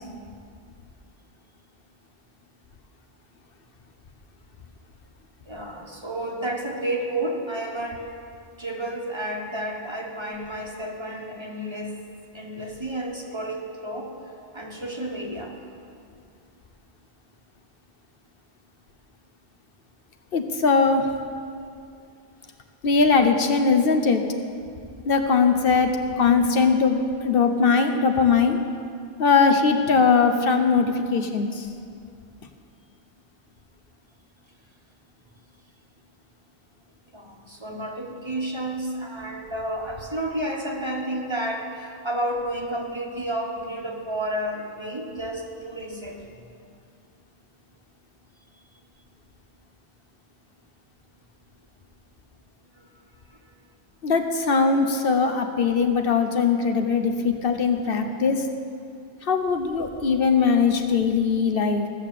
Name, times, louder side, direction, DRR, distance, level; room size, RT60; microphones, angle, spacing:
voice 1, 5.5-8.0 8.6-12.0 12.3-14.1 14.5-15.6 37.1-46.2 52.8-52.9, right 1 dB, 25° right, 0 dB, 1.3 m, -31 dB
voice 2, 20.3-21.1 22.8-24.2 25.1-28.6 29.2-31.7 54.0-58.4 59.2-61.9, left 5 dB, 65° left, 6 dB, 1.0 m, -20 dB
15.0 x 6.6 x 7.4 m, 2.4 s
omnidirectional pair, 1.1 m